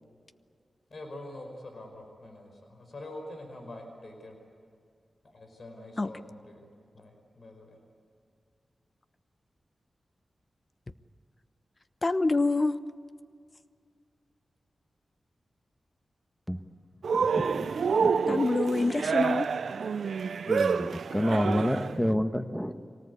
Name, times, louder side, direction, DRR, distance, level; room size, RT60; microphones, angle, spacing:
voice 1, 0.9-4.4 5.2-6.7 6.9-7.8, left 1 dB, 65° left, 3 dB, 5.1 m, -45 dB
voice 2, 12.0-12.8 18.3-19.5, left 3 dB, 40° left, 12 dB, 1.0 m, -26 dB
Cheering, 17.0-22.0, right 6 dB, 85° right, 0.5 m, -28 dB
voice 3, 17.1-17.7 18.0-19.1 20.4-22.7, equal, 5° left, 8 dB, 1.4 m, -30 dB
24.5 x 18.5 x 8.4 m, 2.2 s
cardioid pair, 55°, 0 cm